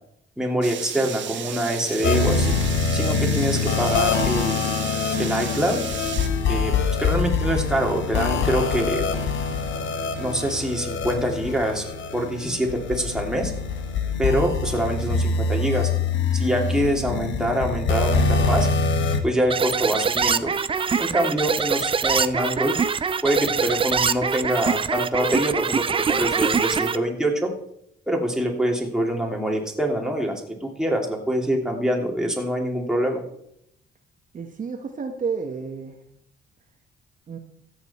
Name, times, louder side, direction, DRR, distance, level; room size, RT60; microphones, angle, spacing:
voice 1, 0.4-2.6 2.9-4.8 5.2-5.8 6.5-9.1 10.2-11.8 12.1-13.5 14.2-15.9 16.3-18.7 19.2-20.5 21.0-22.8 23.2-27.5 28.1-33.2, right 1 dB, 5° right, 0 dB, 2.6 m, -25 dB
sound 1, 0.6-6.3, right 10 dB, 70° right, 1.1 m, -34 dB
sound 2, 2.0-19.2, left 4 dB, 75° left, 1.3 m, -24 dB
sound 3, 19.5-27.0, right 6 dB, 25° right, 0.5 m, -23 dB
voice 2, 34.3-36.0 37.3-37.4, right 5 dB, 40° right, 4 dB, 1.2 m, -31 dB
13.5 x 7.9 x 4.2 m, 0.74 s
cardioid pair, 90°, 20 cm